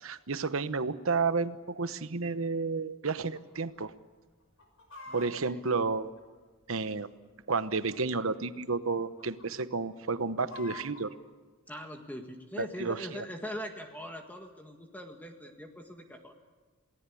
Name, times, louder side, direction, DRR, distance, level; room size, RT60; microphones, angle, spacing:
voice 1, 0.0-3.9 5.1-6.1 6.7-7.1 7.5-11.1 12.6-13.2, right 4 dB, 70° right, 13 dB, 1.0 m, -31 dB
Chicken rooster, 3.1-3.6 3.9-4.0 4.4-6.7 7.4-8.2 8.5-8.7 9.0-9.5 9.9-11.1, left 2 dB, 70° left, 5.8 m, -48 dB
voice 2, 5.1-5.6 11.7-16.3, equal, 10° left, 4 dB, 1.7 m, -42 dB
28.0 x 19.0 x 8.6 m, 1.4 s
head